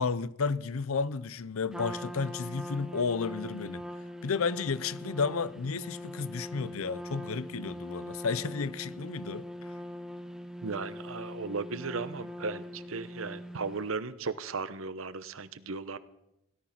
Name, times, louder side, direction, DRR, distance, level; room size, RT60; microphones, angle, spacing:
voice 1, 0.0-3.8 4.2-9.7, left 5 dB, 85° left, 0.6 m, -32 dB
Trumpet, 1.7-13.8, equal, 5° right, 0.9 m, -42 dB
voice 2, 10.6-16.0, right 4 dB, 75° right, 0.9 m, -36 dB
17.0 x 12.5 x 5.9 m
head